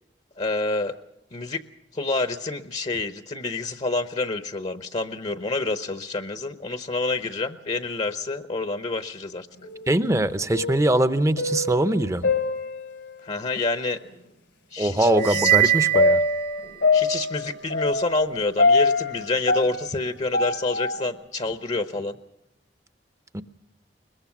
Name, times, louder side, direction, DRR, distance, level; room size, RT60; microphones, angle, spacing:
voice 1, 0.4-0.9 1.3-1.6 1.9-9.5 13.2-14.0 14.7-15.7 16.9-22.2, left 3 dB, 40° left, 9 dB, 0.9 m, -28 dB
sound 1, 9.6-10.1 10.4-13.2 14.0-14.1 15.1-21.0, left 3 dB, 85° left, 3.0 m, -24 dB
voice 2, 9.9-12.3 14.8-16.2 23.3-23.4, right 1 dB, 15° right, 12 dB, 0.7 m, -22 dB
sound 2, 15.2-17.0, right 14 dB, 60° right, 1.6 m, -23 dB
22.0 x 21.5 x 6.0 m, 0.88 s
head